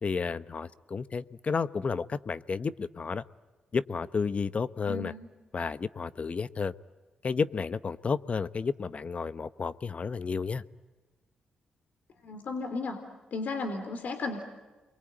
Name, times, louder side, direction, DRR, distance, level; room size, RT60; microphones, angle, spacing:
voice 1, 0.0-3.2 3.7-5.1 5.5-6.7 7.2-10.6, left 5 dB, 45° left, 15 dB, 1.0 m, -31 dB
voice 2, 4.9-5.2 12.2-13.0 13.3-14.4, left 3 dB, 65° left, 6 dB, 3.6 m, -34 dB
29.5 x 22.5 x 9.1 m, 1.2 s
supercardioid pair, 55°, 3 cm